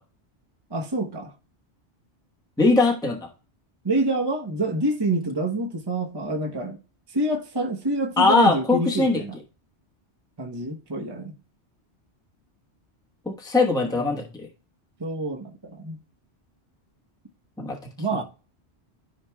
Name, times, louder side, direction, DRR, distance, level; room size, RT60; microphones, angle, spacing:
voice 1, 0.7-1.3 3.8-6.8 7.1-9.4 10.4-11.3 13.9-14.2 15.0-16.0 18.0-18.2, right 2 dB, 25° right, 1.0 m, -27 dB
voice 2, 2.6-3.3 8.2-9.2 13.2-14.5 17.6-17.8, left 3 dB, 5° left, 1.1 m, -21 dB
13.5 x 5.0 x 2.3 m
omnidirectional pair, 1.2 m